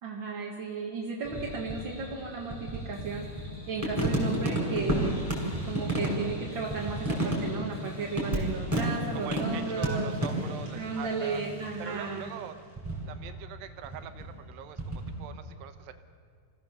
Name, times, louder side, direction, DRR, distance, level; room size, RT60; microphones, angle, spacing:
voice 1, 0.0-3.3 3.7-5.1 5.6-10.1 10.7-12.2, right 4 dB, 55° right, -1 dB, 1.3 m, -34 dB
sound 1, 1.2-12.1 12.8-13.4 13.7-15.2, right 1 dB, 10° right, 4.9 m, -32 dB
sound 2, 2.9-12.5, left 2 dB, 65° left, 3.5 m, -46 dB
voice 2, 9.1-11.4 11.8-12.5 13.1-15.9, right 10 dB, 80° right, 9 dB, 2.9 m, -43 dB
25.5 x 16.5 x 6.8 m, 2.1 s
omnidirectional pair, 5.0 m